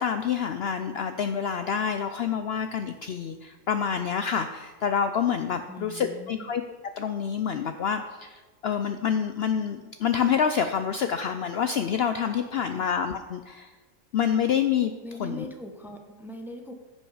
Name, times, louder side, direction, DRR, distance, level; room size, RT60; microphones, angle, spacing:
voice 1, 0.0-6.6 7.0-13.7 14.1-14.9 15.2-15.5, left 7 dB, 65° left, 8 dB, 0.6 m, -27 dB
voice 2, 5.7-6.5 12.7-12.9 15.0-16.7, left 1 dB, ahead, 4 dB, 0.7 m, -41 dB
15.0 x 5.4 x 4.8 m, 1.3 s
omnidirectional pair, 1.4 m